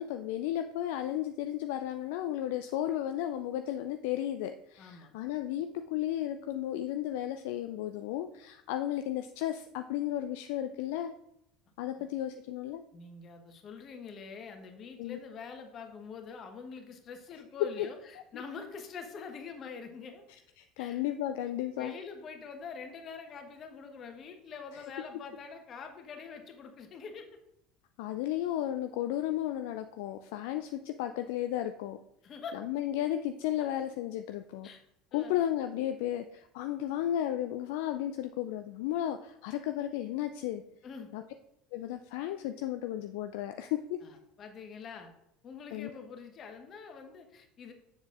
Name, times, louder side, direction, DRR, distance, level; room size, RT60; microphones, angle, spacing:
voice 1, 0.0-11.1 11.8-12.8 15.0-15.2 17.8-17.9 18.3-18.4 20.6-21.9 24.7-24.8 28.0-32.0 32.5-34.7 35.1-40.6 41.1-41.2 41.7-44.0 45.7-45.9, left 12 dB, 65° left, 7 dB, 0.3 m, -34 dB
voice 2, 4.8-5.1 12.0-12.1 12.9-18.0 18.3-20.2 20.8-21.0 21.3-21.4 21.8-27.4 32.2-32.6 34.6-34.8 35.1-35.4 40.8-41.1 44.0-45.1 45.4-47.7, left 5 dB, 40° left, 5 dB, 1.2 m, -45 dB
7.2 x 7.1 x 2.5 m, 0.80 s
figure-of-eight pair, 70°, 0 cm